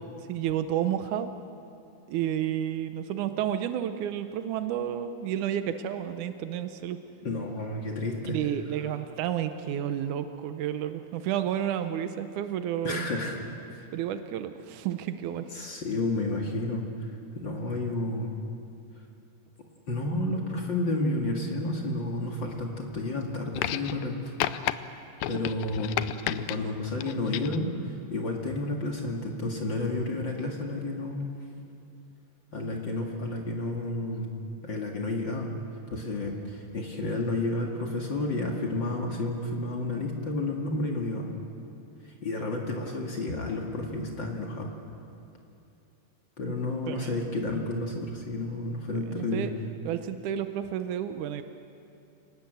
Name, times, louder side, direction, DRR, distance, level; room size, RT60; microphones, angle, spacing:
voice 1, 0.3-1.3 2.1-7.0 8.3-13.1 13.9-15.5 46.9-47.2 49.0-49.5 49.9-51.4, right 10 dB, 85° right, 9 dB, 1.7 m, -31 dB
voice 2, 7.2-8.4 12.8-13.4 13.7-13.9 15.5-18.3 19.9-24.3 24.6-24.7 25.3-25.9 26.3-31.3 32.5-34.3 34.6-35.5 35.9-41.3 42.2-44.7 46.4-49.5, left 2 dB, 40° left, 0 dB, 1.9 m, -31 dB
sound 1, 23.6-24.1 24.4-24.8 25.2-26.6 27.0-27.6 28.7-28.8, left 14 dB, 80° left, 2.1 m, -31 dB
27.5 x 19.0 x 7.8 m, 2.7 s
omnidirectional pair, 4.7 m